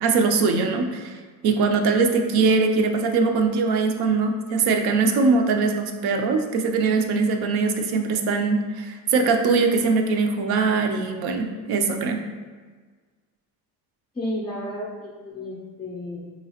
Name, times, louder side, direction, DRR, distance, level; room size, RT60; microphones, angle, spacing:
voice 1, 0.0-12.2, right 4 dB, 75° right, 4 dB, 0.6 m, -22 dB
voice 2, 14.1-16.3, left 1 dB, 15° left, -6 dB, 0.3 m, -32 dB
4.7 x 2.9 x 2.8 m, 1.5 s
cardioid pair, 175°, 38 cm